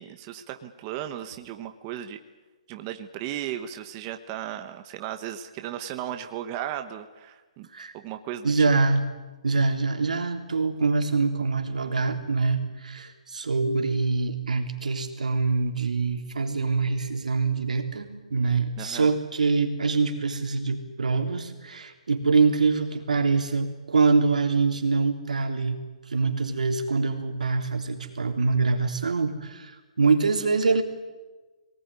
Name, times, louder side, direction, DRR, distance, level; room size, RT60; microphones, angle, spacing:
voice 1, 0.0-2.2 2.7-7.7 7.9-8.6 18.8-19.1, right 11 dB, 25° right, 7 dB, 1.1 m, -35 dB
voice 2, 8.4-9.0 9.4-25.8 26.1-30.8, right 4 dB, 90° right, 4 dB, 3.5 m, -24 dB
23.0 x 19.0 x 9.8 m, 1.3 s
hypercardioid pair, 165°, 4 cm